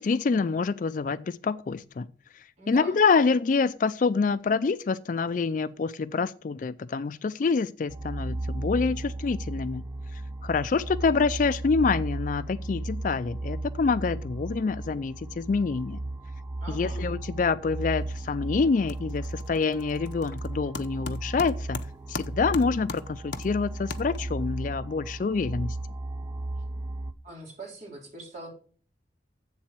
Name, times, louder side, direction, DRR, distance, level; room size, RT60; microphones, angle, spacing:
voice 1, 0.0-2.1 2.7-9.8 10.1-16.0 16.7-21.8 22.1-25.8, left 4 dB, 45° left, 0.3 m, -26 dB
voice 2, 2.6-3.0 16.6-17.1 27.2-28.5, right 2 dB, 40° right, 4.0 m, -42 dB
sound 1, 7.9-27.1, right 2 dB, 15° right, 0.5 m, -35 dB
sound 2, 18.0-18.4 18.7-24.5, left 4 dB, 65° left, 0.7 m, -41 dB
7.7 x 7.4 x 5.9 m
head